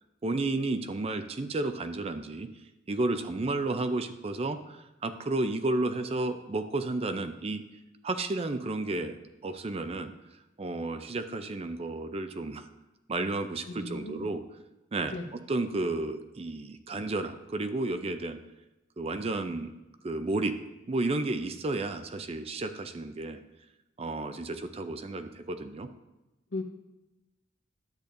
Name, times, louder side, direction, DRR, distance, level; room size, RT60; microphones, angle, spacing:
voice 1, 0.2-2.5 2.9-7.6 8.0-9.2 9.4-10.1 10.6-12.7 13.1-14.4 14.9-18.4 19.0-19.7 20.0-20.6 20.9-23.4 24.0-25.9, right 2 dB, 30° right, 9 dB, 0.4 m, -32 dB
voice 2, 13.7-14.3 15.1-15.2 26.5-26.6, left 2 dB, 70° left, 5 dB, 0.9 m, -36 dB
10.5 x 8.3 x 2.6 m, 0.98 s
head